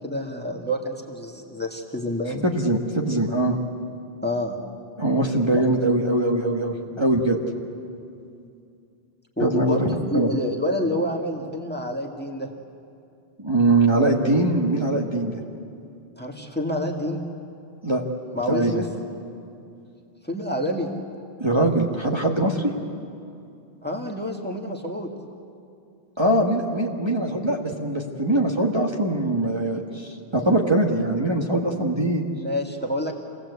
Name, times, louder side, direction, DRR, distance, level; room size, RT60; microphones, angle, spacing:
voice 1, 0.0-2.5 4.2-4.6 5.5-5.7 9.4-12.5 16.2-17.2 18.3-18.9 20.2-20.9 23.8-25.1 32.3-33.1, left 1 dB, 10° left, 2 dB, 1.7 m, -28 dB
voice 2, 2.4-3.6 5.0-7.4 9.4-9.8 10.1-10.3 13.4-15.4 17.8-18.0 18.5-18.7 21.4-22.7 26.2-32.2, right 2 dB, 25° right, -1 dB, 1.6 m, -22 dB
27.0 x 17.5 x 8.2 m, 2.5 s
omnidirectional pair, 1.1 m